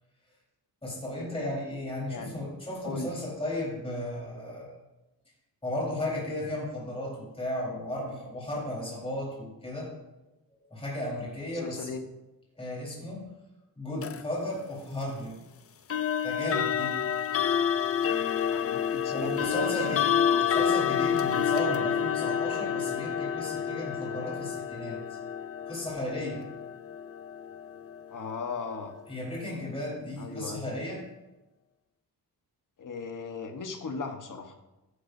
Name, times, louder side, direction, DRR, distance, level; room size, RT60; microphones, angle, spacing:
voice 1, 0.8-4.8 5.6-9.9 10.5-11.9 12.6-13.3 13.8-15.4 16.2-17.0 19.1-20.2 20.5-25.2 25.6-26.5 29.1-31.0, left 1 dB, 15° left, -5 dB, 4.2 m, -35 dB
voice 2, 2.1-2.5 2.8-3.1 11.5-12.0 18.5-20.0 20.3-20.8 28.1-28.9 30.2-30.6 32.8-34.6, left 4 dB, 55° left, 5 dB, 1.3 m, -38 dB
sound 1, 14.0-14.2 15.9-28.7, left 8 dB, 40° left, 0.5 m, -29 dB
13.5 x 11.5 x 2.7 m, 1.0 s
wide cardioid pair, 130°, 37 cm